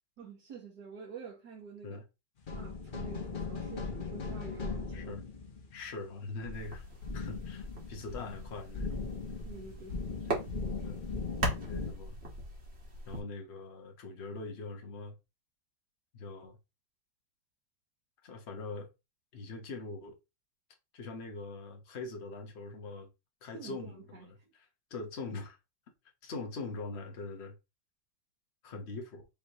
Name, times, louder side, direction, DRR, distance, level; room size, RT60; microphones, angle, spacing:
voice 1, 0.2-2.0 2.5-5.2 9.4-10.0 23.5-24.5 28.7-28.8, right 5 dB, 60° right, 1.8 m, -48 dB
sound 1, 2.4-11.9, left 4 dB, 60° left, 0.5 m, -39 dB
voice 2, 5.7-6.9 7.1-8.9 10.8-11.0 11.6-12.2 13.1-15.2 16.1-16.6 18.2-18.9 19.3-20.2 20.9-23.1 23.4-25.6 26.2-27.5 28.6-29.3, left 3 dB, 40° left, 1.1 m, -42 dB
sound 2, 6.5-13.2, right 1 dB, 35° right, 1.6 m, -40 dB
5.3 x 3.2 x 2.9 m
omnidirectional pair, 2.1 m